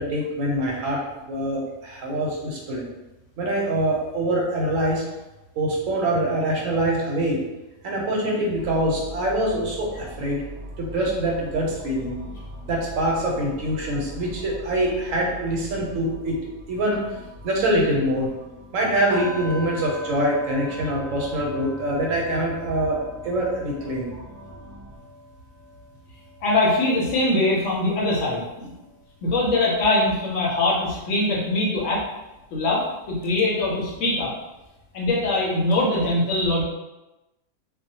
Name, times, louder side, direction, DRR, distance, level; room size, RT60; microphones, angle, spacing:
voice 1, 0.0-2.9 3.4-5.0 5.6-7.4 7.8-10.4 10.8-12.2 12.7-16.4 16.7-17.2 17.4-18.3 18.7-24.1, right 1 dB, 75° right, -2 dB, 0.9 m, -24 dB
sound 1, 8.5-25.0, equal, 55° right, 0.5 m, -42 dB
sound 2, 19.1-29.0 29.4-29.6 30.1-30.2, equal, 25° left, 0.6 m, -41 dB
voice 2, 26.4-28.7 29.2-32.0 32.5-34.3 34.9-36.6, left 2 dB, 70° left, -3 dB, 0.8 m, -22 dB
2.3 x 2.1 x 2.7 m, 1.0 s
omnidirectional pair, 1.4 m